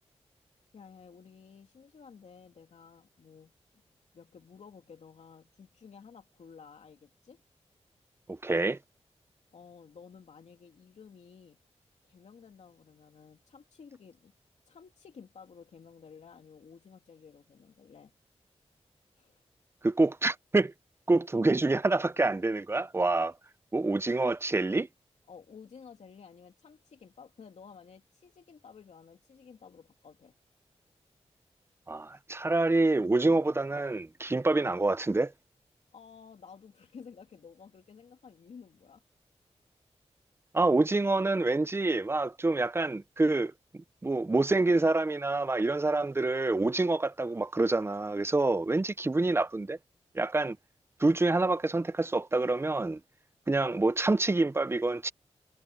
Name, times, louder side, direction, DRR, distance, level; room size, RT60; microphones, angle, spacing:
voice 1, 0.7-3.8 4.1-7.4 9.5-11.6 12.0-14.3 14.6-18.1 19.2-19.4 25.3-30.3 35.9-39.0, left 6 dB, 85° left, 2.8 m, -53 dB
voice 2, 8.3-8.8 19.8-20.7 21.1-23.3 23.7-24.9 31.9-35.3 40.5-49.8 50.1-50.6 51.0-53.0 53.5-55.1, right 2 dB, 20° right, 0.6 m, -27 dB
wide cardioid pair, 95°, 11 cm